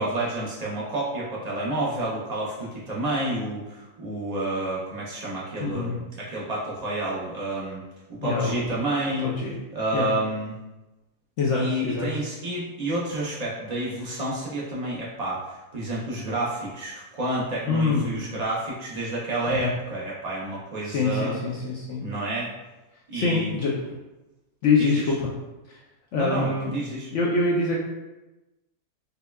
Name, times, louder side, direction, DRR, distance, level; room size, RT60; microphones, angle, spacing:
voice 1, 0.0-7.8 8.1-9.3 9.7-10.6 11.5-21.4 22.0-22.5 23.1-23.6 24.8-25.1 26.1-27.1, right 1 dB, 75° right, -6 dB, 0.3 m, -29 dB
voice 2, 5.6-6.0 8.2-8.7 9.2-9.6 9.9-10.1 11.4-12.1 17.6-18.1 19.6-19.7 20.8-22.0 23.1-23.7 24.6-25.1 25.7-25.8 26.1-26.7 27.1-27.7, left 3 dB, 65° left, -4 dB, 0.7 m, -24 dB
5.3 x 2.2 x 2.2 m, 1.0 s
omnidirectional pair, 1.6 m